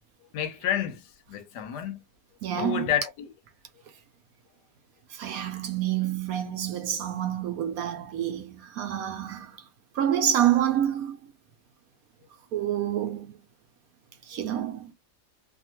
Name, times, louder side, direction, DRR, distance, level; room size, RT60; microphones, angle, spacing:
voice 1, 0.3-1.0 1.3-2.0 2.6-3.3, left 10 dB, 85° left, 1.2 m, -29 dB
voice 2, 2.4-2.9 5.1-9.5 10.0-11.2 12.5-13.3 14.3-14.9, right 11 dB, 70° right, 0.9 m, -27 dB
2.7 x 2.4 x 2.8 m
omnidirectional pair, 1.8 m